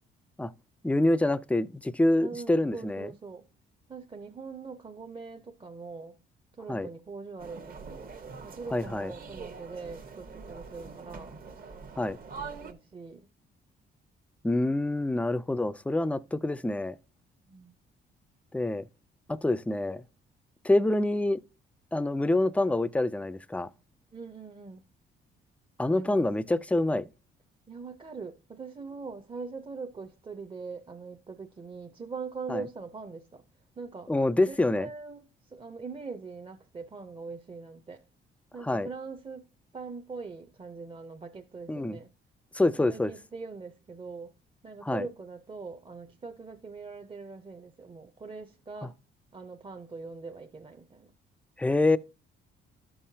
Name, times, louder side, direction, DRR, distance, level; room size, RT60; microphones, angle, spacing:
voice 1, 0.8-3.1 6.7-6.9 8.7-9.1 12.0-12.2 14.4-17.0 18.5-18.8 19.3-20.0 20.6-21.4 21.9-23.7 25.8-27.1 32.5-32.6 34.1-34.9 38.7-38.9 41.7-42.0 42.5-43.1 44.8-45.1 51.6-52.0, left 2 dB, 5° left, 0.4 m, -26 dB
voice 2, 2.2-3.5 3.9-6.2 6.5-8.1 8.4-11.4 12.6-13.3 17.5-17.7 24.1-24.8 25.9-26.3 27.7-33.4 33.8-34.1 34.5-38.0 38.5-42.1 42.8-44.3 44.6-49.0 49.3-51.1, right 4 dB, 25° right, 0.7 m, -42 dB
sound 1, 7.4-12.7, right 5 dB, 45° right, 1.1 m, -44 dB
12.5 x 5.6 x 2.7 m
cardioid pair, 90°, 20 cm